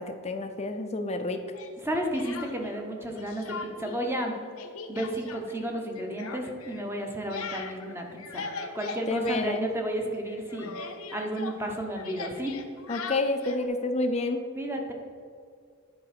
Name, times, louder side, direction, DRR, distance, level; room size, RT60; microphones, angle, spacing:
voice 1, 0.0-1.4 9.1-9.7 12.9-14.4, left 2 dB, 30° left, 7 dB, 0.6 m, -29 dB
Speech, 1.5-2.9 3.2-4.0 4.3-10.0 10.2-13.7, left 4 dB, 80° left, 0.8 m, -41 dB
voice 2, 1.8-4.3 4.9-8.5 8.7-10.7 11.1-12.5 14.6-14.9, right 1 dB, 10° right, 2 dB, 1.0 m, -32 dB
10.0 x 4.6 x 5.9 m, 2.2 s
head